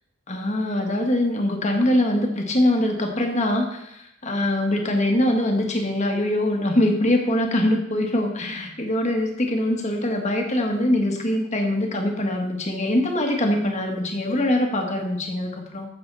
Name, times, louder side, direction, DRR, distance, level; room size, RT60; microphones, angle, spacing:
voice 1, 0.3-15.9, left 1 dB, 30° left, 2 dB, 1.6 m, -23 dB
14.5 x 7.0 x 4.1 m, 0.83 s
head